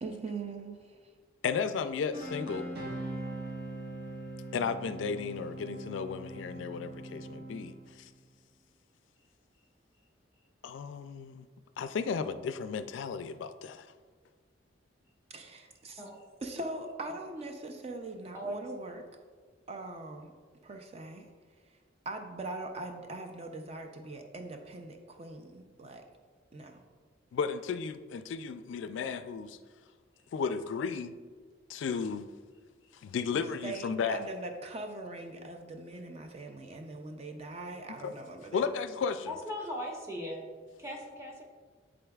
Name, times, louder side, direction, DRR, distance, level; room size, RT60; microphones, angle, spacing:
voice 1, 0.0-1.1 15.3-16.0 16.4-19.1 19.7-20.3 20.6-21.3 21.7-21.8 22.1-26.0 26.5-26.8 33.3-38.7, right 2 dB, 35° right, 4 dB, 0.4 m, -41 dB
voice 2, 1.4-2.7 4.5-8.1 10.6-11.5 11.8-13.9 27.3-29.6 30.3-31.1 31.7-32.3 33.0-34.2 38.0-38.1 38.5-39.3, left 6 dB, 80° left, 11 dB, 0.3 m, -34 dB
sound 1, 2.1-8.0, right 2 dB, 55° right, 1.1 m, -41 dB
voice 3, 18.3-18.7 39.3-40.4 40.8-41.4, equal, 15° right, -2 dB, 1.0 m, -38 dB
11.0 x 3.8 x 2.3 m, 1.5 s
head